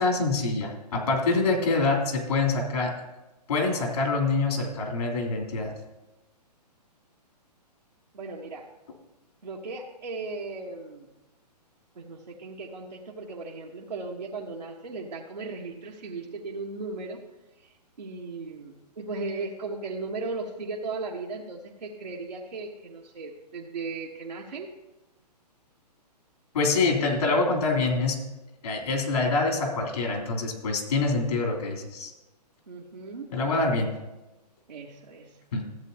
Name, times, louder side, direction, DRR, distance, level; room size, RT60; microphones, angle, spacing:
voice 1, 0.0-2.9 3.5-5.7 26.5-28.2 28.6-32.1 33.3-33.9 35.5-35.6, left 3 dB, 65° left, 0 dB, 3.1 m, -25 dB
voice 2, 8.1-8.7 9.4-11.1 11.9-17.2 17.6-17.7 18.0-24.7 32.7-33.3 34.7-35.3, right 3 dB, 80° right, -3 dB, 1.2 m, -37 dB
14.0 x 8.2 x 2.8 m, 1.0 s
hypercardioid pair, 130°, 21 cm